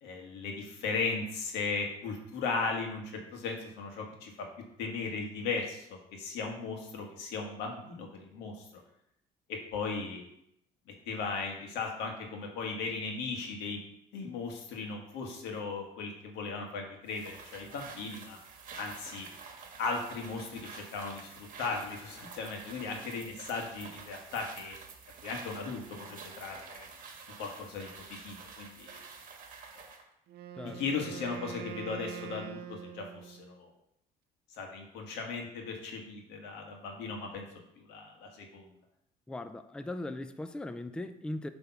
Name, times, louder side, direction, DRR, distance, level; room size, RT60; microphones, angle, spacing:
voice 1, 0.0-3.0 3.3-4.3 4.8-8.6 9.5-10.2 11.1-13.8 14.1-18.4 18.7-19.3 19.8-24.8 25.2-26.9 27.4-29.0 30.6-33.7 34.6-37.4 37.8-38.7, left 4 dB, 90° left, 2 dB, 1.6 m, -37 dB
sound 1, 17.1-30.1, right 5 dB, 55° right, 1.4 m, -48 dB
Wind instrument woodwind instrument, 30.3-33.6, right 9 dB, 70° right, 0.7 m, -44 dB
voice 2, 39.3-41.5, left 1 dB, 5° left, 10 dB, 0.4 m, -39 dB
7.9 x 3.5 x 5.7 m, 0.76 s
cardioid pair, 110°, 17 cm